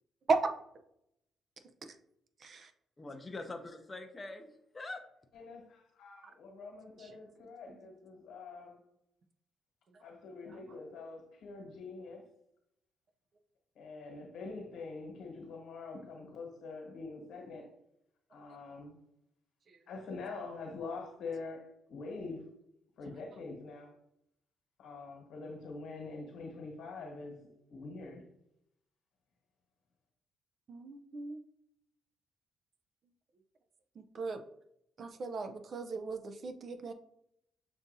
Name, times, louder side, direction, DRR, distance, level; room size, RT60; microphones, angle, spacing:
voice 1, 2.4-2.7 7.0-7.1 30.7-31.4 34.0-34.4 35.0-36.9, right 4 dB, 50° right, 0.4 m, -36 dB
voice 2, 3.0-5.0, left 2 dB, 25° left, 0.5 m, -44 dB
voice 3, 5.3-8.8 10.0-12.2 13.7-17.7 18.3-19.0 19.9-22.4 23.0-23.9 24.8-27.4 27.7-28.2, left 3 dB, 75° left, 1.2 m, -45 dB
6.7 x 2.5 x 2.6 m
cardioid pair, 90°, 0 cm